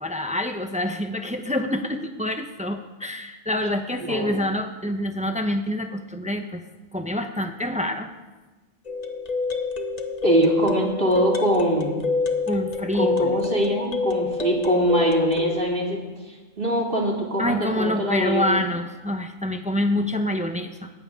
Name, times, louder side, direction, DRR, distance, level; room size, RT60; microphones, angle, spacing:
voice 1, 0.0-6.6 6.9-8.1 12.5-13.4 17.4-20.9, left 1 dB, 5° right, 6 dB, 0.9 m, -26 dB
voice 2, 4.0-4.4 10.2-12.1 12.9-18.6, right 1 dB, 40° right, -1 dB, 2.9 m, -23 dB
sound 1, 8.9-15.6, left 4 dB, 30° left, 1.1 m, -26 dB
19.5 x 14.5 x 3.8 m, 1.2 s
omnidirectional pair, 1.4 m